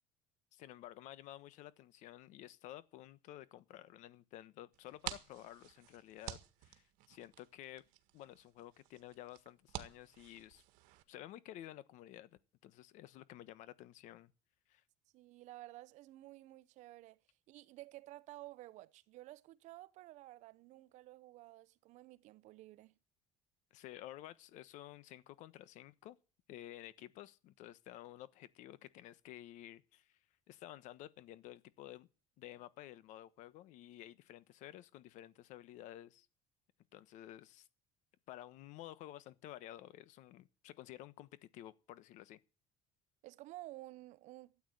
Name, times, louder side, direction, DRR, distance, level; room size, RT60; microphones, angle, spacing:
voice 1, 0.5-7.8 8.1-10.6 11.1-14.3 14.7-14.8 23.7-26.2 26.5-30.2 30.5-32.1 32.4-36.3 36.9-37.7 38.3-42.4, left 13 dB, 65° left, 1.2 m, -52 dB
sound 1, 4.7-11.0, right 15 dB, 80° right, 1.7 m, -50 dB
voice 2, 15.1-17.2 17.5-22.9 43.2-44.6, right 17 dB, 60° right, 0.9 m, -53 dB
13.0 x 8.8 x 9.9 m
cardioid pair, 135°, 13 cm